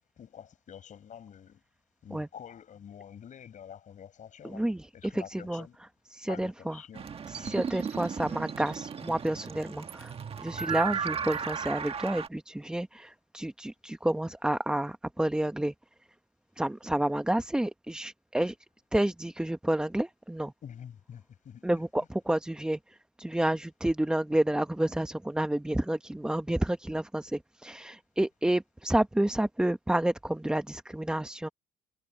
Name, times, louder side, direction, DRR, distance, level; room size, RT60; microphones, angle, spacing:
voice 1, 0.2-1.6 2.0-4.7 4.9-5.8 6.3-7.1 7.4-7.7 20.6-21.6, left 8 dB, 50° left, 6.0 m, -47 dB
voice 2, 4.4-5.6 6.1-6.8 7.3-10.1 10.4-15.7 16.6-18.5 18.9-20.5 21.6-31.5, right 1 dB, 5° right, 0.8 m, -30 dB
sound 1, 6.9-12.3, right 7 dB, 35° right, 1.5 m, -35 dB
cardioid pair, 110°, 17 cm